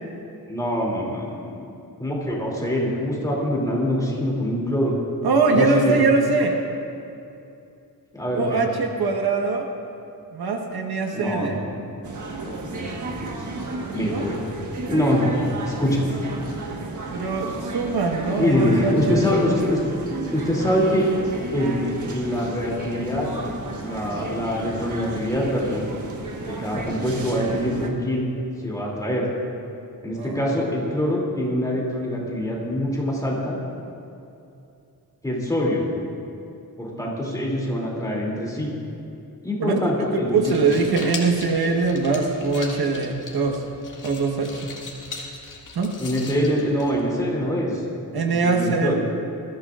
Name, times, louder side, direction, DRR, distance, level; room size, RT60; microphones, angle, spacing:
voice 1, 0.5-1.3 2.0-4.9 5.5-6.0 8.1-8.6 11.1-11.6 12.4-13.4 13.9-14.4 14.9-16.2 18.4-19.8 20.3-21.1 21.5-21.8 22.1-23.5 23.8-25.9 26.4-28.3 28.6-29.3 30.0-33.6 35.2-35.9 36.8-38.7 39.4-40.6 46.0-47.8 48.3-48.9, equal, 10° left, -4 dB, 2.9 m, -24 dB
voice 2, 5.2-6.6 8.3-9.7 10.3-11.6 14.0-14.2 17.1-19.2 30.2-30.4 39.6-39.7 40.1-43.6 44.0-44.7 45.7-45.9 48.1-48.9, right 4 dB, 80° right, 2 dB, 1.5 m, -22 dB
sound 1, 12.0-27.9, right 3 dB, 55° right, 1.5 m, -33 dB
sound 2, 40.3-47.3, left 3 dB, 55° left, 2.0 m, -39 dB
21.0 x 14.5 x 2.5 m, 2.7 s
wide cardioid pair, 145°, 37 cm